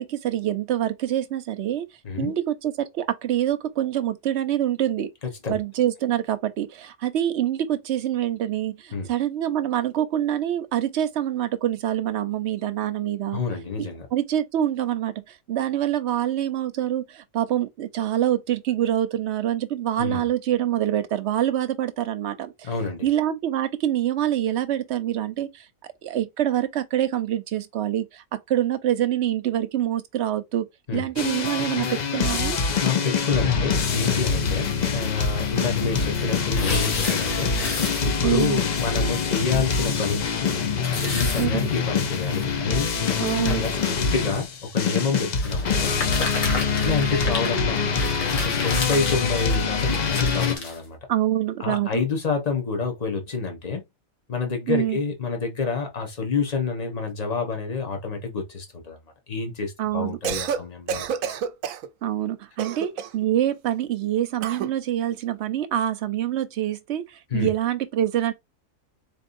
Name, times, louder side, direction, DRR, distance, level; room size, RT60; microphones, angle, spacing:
voice 1, 0.0-1.8 2.2-5.1 5.5-13.4 13.8-22.7 23.0-25.6 26.0-30.6 30.9-32.6 38.2-38.6 41.4-41.7 43.2-43.6 51.1-52.0 54.7-55.0 59.8-60.2 62.0-67.0 67.3-68.3, right 11 dB, 65° right, 0.9 m, -25 dB
voice 2, 13.3-14.1 20.0-20.3 22.6-23.1 30.9-31.1 32.8-37.5 38.0-40.3 40.9-46.0 46.5-51.0 51.6-53.8 54.3-59.0 59.3-61.4 67.3-67.5, left 4 dB, 30° left, 1.2 m, -28 dB
sound 1, 31.2-50.6, left 5 dB, 50° left, 0.5 m, -24 dB
sound 2, 36.3-38.4 38.7-38.8 39.3-39.4 39.7-39.8 40.8-42.4 43.1-43.2 44.1-44.4 45.4-50.8, left 3 dB, 75° left, 1.8 m, -32 dB
Cough, 60.1-60.6 60.9-61.9 62.6-63.2 64.4-64.8, right 7 dB, 90° right, 1.0 m, -29 dB
4.2 x 3.4 x 2.6 m
omnidirectional pair, 1.4 m